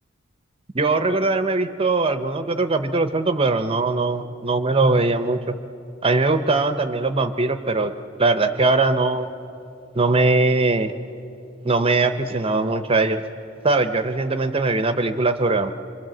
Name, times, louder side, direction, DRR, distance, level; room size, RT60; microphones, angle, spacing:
voice 1, 0.7-5.6 6.0-7.9 8.2-9.3 9.9-10.9 11.6-13.2 13.6-15.7, right 3 dB, 30° right, 10 dB, 0.7 m, -21 dB
26.0 x 23.5 x 7.7 m, 2.9 s
head